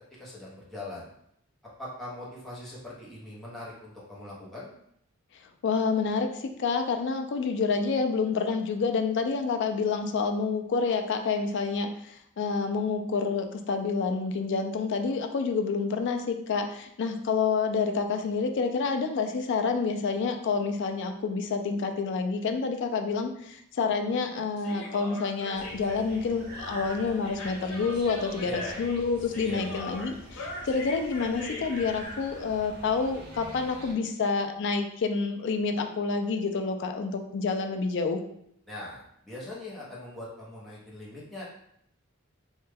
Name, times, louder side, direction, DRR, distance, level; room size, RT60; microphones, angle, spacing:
voice 1, 0.2-1.1 1.8-4.7 28.4-28.8 29.4-29.8 38.7-41.4, left 1 dB, ahead, -8 dB, 0.8 m, -41 dB
voice 2, 5.6-38.2, left 4 dB, 55° left, 6 dB, 0.4 m, -28 dB
Human voice, 24.6-31.9, left 2 dB, 75° left, 0.8 m, -41 dB
sound 1, 25.5-33.9, equal, 50° right, 0.7 m, -45 dB
3.2 x 2.2 x 3.3 m, 0.72 s
head